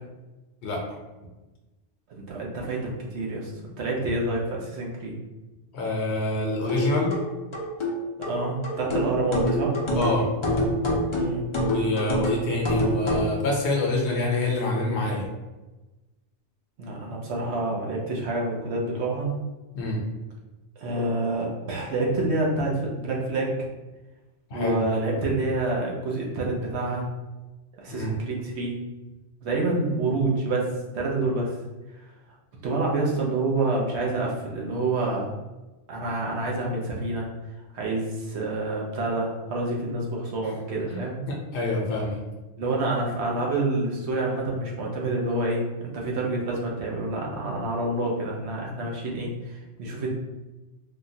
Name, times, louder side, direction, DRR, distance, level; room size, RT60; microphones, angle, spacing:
voice 1, 2.1-3.5 3.8-5.2 8.2-9.8 11.1-11.4 16.8-19.3 20.8-23.7 24.5-27.1 27.8-28.8 29.4-30.7 30.9-31.6 32.0-32.1 32.6-35.3 35.9-37.3 37.7-41.2 42.6-50.1, right 2 dB, 70° right, -2 dB, 1.0 m, -27 dB
voice 2, 5.7-7.1 9.9-10.3 11.6-15.3 19.7-20.0 24.5-24.8 27.9-28.1 40.9-41.0 41.3-42.2, left 2 dB, 70° left, -1 dB, 0.9 m, -26 dB
sound 1, 6.7-13.3, equal, 40° left, 0.4 m, -26 dB
3.5 x 2.3 x 2.6 m, 1.1 s
omnidirectional pair, 1.2 m